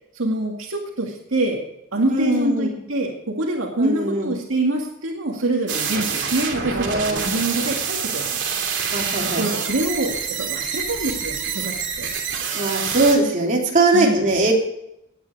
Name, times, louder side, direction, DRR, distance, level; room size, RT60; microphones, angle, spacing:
voice 1, 0.1-1.6 1.9-8.4 9.4-12.1 13.9-14.2, right 2 dB, 75° right, 1 dB, 2.1 m, -25 dB
voice 2, 2.1-2.8 3.8-4.3 6.7-7.2 8.9-9.6 12.5-14.5, right 2 dB, 40° right, -2 dB, 3.3 m, -20 dB
sound 1, 5.7-13.2, right 6 dB, 60° right, 2.9 m, -26 dB
17.5 x 9.7 x 4.8 m, 0.83 s
head